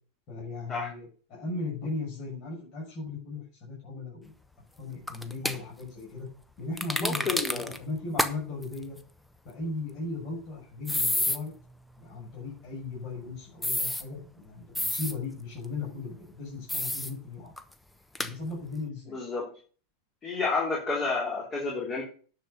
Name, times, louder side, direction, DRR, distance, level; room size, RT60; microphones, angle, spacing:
voice 1, 0.3-4.3 4.8-6.3 6.6-9.0 9.4-11.5 12.0-17.5 18.2-19.2, left 3 dB, 40° left, -3 dB, 6.1 m, -37 dB
sound 1, 5.1-5.6 6.8-7.8 8.2-8.3 8.6-8.7 10.9-11.4 13.6-14.0 14.8-15.1 16.7-17.1 17.6-17.7 18.2-18.3, left 1 dB, 5° left, 0.9 m, -29 dB
voice 2, 7.0-7.7 19.1-19.5 20.2-22.0, left 3 dB, 25° left, -3 dB, 3.5 m, -30 dB
10.5 x 6.8 x 5.7 m, 0.42 s
figure-of-eight pair, 90°, 0 cm